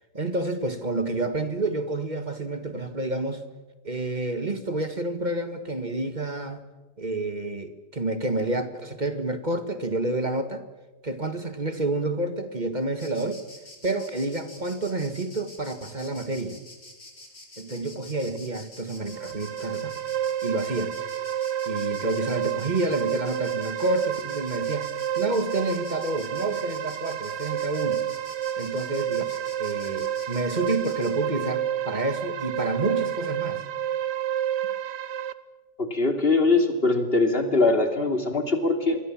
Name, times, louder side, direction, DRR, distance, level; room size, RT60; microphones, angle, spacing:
voice 1, 0.1-3.4 3.8-6.6 7.0-10.6 11.0-13.4 13.8-16.6 17.6-19.9 20.4-20.9 21.6-24.9 25.1-28.0 28.6-33.6, right 2 dB, 25° right, 9 dB, 1.7 m, -29 dB
Insect, 13.0-31.1, left 2 dB, 50° left, 5.2 m, -47 dB
sound 1, 19.0-35.3, right 10 dB, 75° right, 1.6 m, -30 dB
voice 2, 35.8-39.0, left 3 dB, 35° left, 6 dB, 3.0 m, -22 dB
27.0 x 22.5 x 7.4 m, 1.2 s
omnidirectional pair, 1.8 m